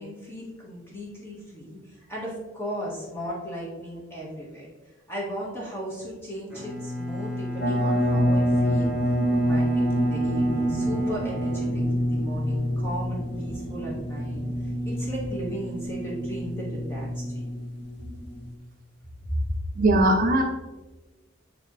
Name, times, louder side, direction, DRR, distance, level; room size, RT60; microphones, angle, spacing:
voice 1, 0.0-4.7 5.1-8.9 9.3-17.2 19.3-19.4, equal, 10° left, -5 dB, 1.6 m, -36 dB
Bowed string instrument, 6.5-12.5, left 1 dB, 5° right, 1.4 m, -33 dB
sound 1, 7.6-18.6, equal, 55° left, 0.8 m, -27 dB
sound 2, 8.0-15.5, equal, 80° left, 2.0 m, -40 dB
voice 2, 19.8-20.4, right 1 dB, 40° right, 1 dB, 0.5 m, -19 dB
9.1 x 3.3 x 3.2 m, 1.2 s
head